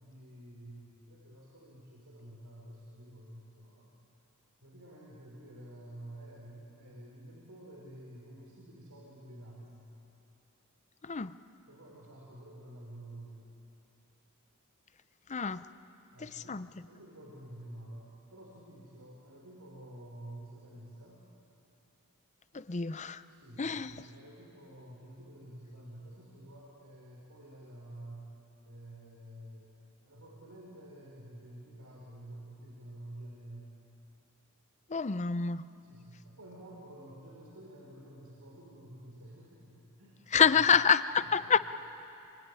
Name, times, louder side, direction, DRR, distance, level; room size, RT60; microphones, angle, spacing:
voice 1, 0.0-3.9 4.6-9.9 11.7-13.4 16.1-21.3 23.3-28.3 28.6-29.7 30.0-33.7 35.8-40.6 41.2-41.5, right 1 dB, 85° right, -4 dB, 4.8 m, -50 dB
voice 2, 11.0-11.4 15.3-15.6 16.2-16.7 22.5-23.2 23.6-23.9 34.9-35.7 40.3-41.6, left 6 dB, 30° left, 13 dB, 0.6 m, -27 dB
26.0 x 23.5 x 9.7 m, 2.8 s
head